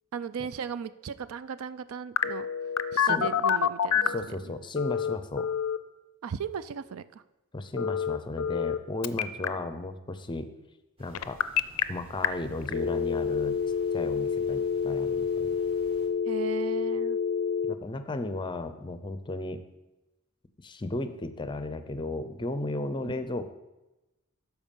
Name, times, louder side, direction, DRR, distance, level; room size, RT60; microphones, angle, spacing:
voice 1, 0.1-2.5 2.9-4.1 4.4-4.5 6.2-7.2 16.3-17.2 23.0-23.2, right 7 dB, 70° right, 15 dB, 0.4 m, -36 dB
Telephone, 2.2-4.2 4.8-5.8 7.8-8.8 9.0-9.5 11.1-11.8 12.2-12.3 12.7-17.7, left 7 dB, 75° left, 0.4 m, -27 dB
voice 2, 3.0-3.3 4.1-5.5 7.5-10.5 11.0-11.4 11.9-13.6 13.9-15.6 17.7-19.6 20.6-23.5, left 2 dB, 20° left, 10 dB, 0.5 m, -34 dB
sound 1, 11.0-16.1, equal, 25° right, 1.3 m, -53 dB
12.5 x 4.8 x 5.3 m, 1.0 s
head